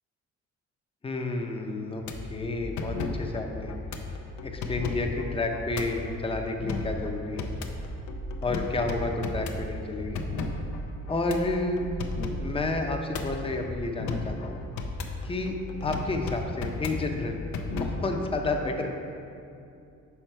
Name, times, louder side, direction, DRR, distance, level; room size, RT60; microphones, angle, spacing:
voice 1, 1.0-2.0 2.3-3.7 4.4-7.5 8.4-10.2 11.1-11.8 12.4-14.6 15.2-15.5 15.8-17.4 17.8-18.9, left 2 dB, 20° left, 3 dB, 0.6 m, -30 dB
sound 1, 2.0-18.3, left 2 dB, 70° left, 0.6 m, -35 dB
5.8 x 4.4 x 4.5 m, 2.6 s
cardioid pair, 90°, 30 cm